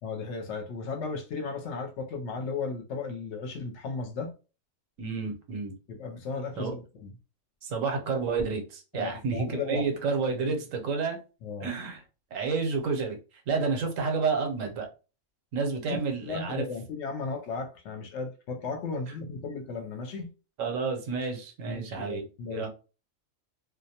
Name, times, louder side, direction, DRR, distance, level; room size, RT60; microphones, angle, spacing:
voice 1, 0.0-4.3 5.9-7.1 8.9-10.1 10.4-10.6 11.4-11.7 16.2-20.3 21.7-22.7, left 4 dB, 65° left, 0.8 m, -35 dB
voice 2, 5.0-5.7 6.6-6.7 7.6-11.2 11.6-12.0 12.3-13.2 13.5-14.9 15.5-16.6 20.6-22.2 22.5-22.7, right 4 dB, 80° right, 1.0 m, -30 dB
2.3 x 2.1 x 2.7 m
omnidirectional pair, 1.4 m